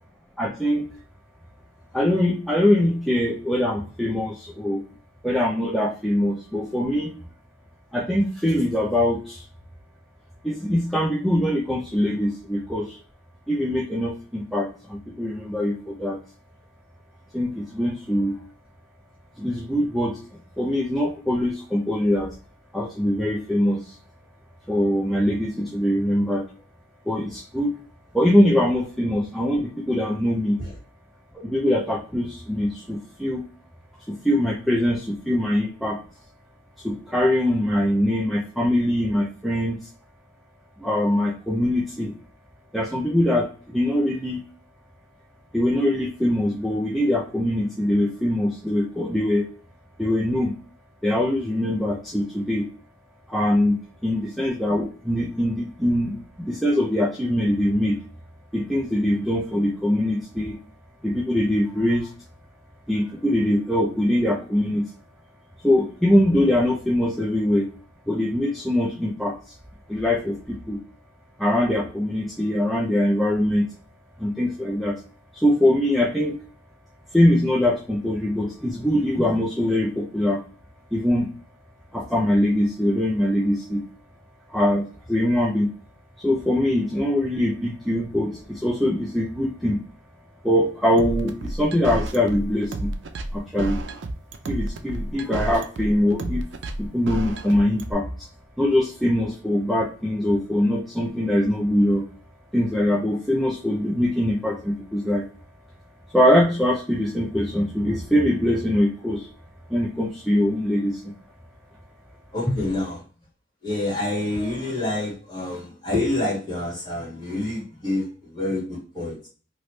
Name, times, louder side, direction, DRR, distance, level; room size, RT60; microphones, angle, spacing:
voice 1, 0.4-0.9 1.9-4.8 5.2-7.1 7.9-9.4 10.4-13.0 13.5-16.2 17.3-18.4 19.4-20.2 20.6-22.3 22.7-24.0 24.7-26.4 27.1-27.7 28.1-30.6 31.3-33.4 34.1-36.0 36.8-39.8 40.8-42.1 42.7-44.4 45.5-49.5 50.0-50.5 51.0-52.7 53.3-53.8 54.0-58.0 58.5-60.6 61.0-62.1 62.9-64.8 65.6-67.7 68.1-69.5 69.9-70.8 71.4-73.6 74.2-75.0 75.3-76.4 77.1-80.4 80.9-81.3 81.9-83.8 84.5-85.7 86.2-89.8 90.4-92.9 93.3-93.8 94.5-96.4 96.8-98.3 98.6-102.0 102.5-105.2 106.1-109.3 109.7-111.1, left 1 dB, ahead, -3 dB, 0.4 m, -22 dB
sound 1, 91.0-97.9, right 1 dB, 70° right, 0.5 m, -30 dB
voice 2, 112.3-113.0 113.6-119.3, left 2 dB, 25° left, -6 dB, 1.8 m, -27 dB
3.1 x 2.5 x 3.1 m, 0.39 s
head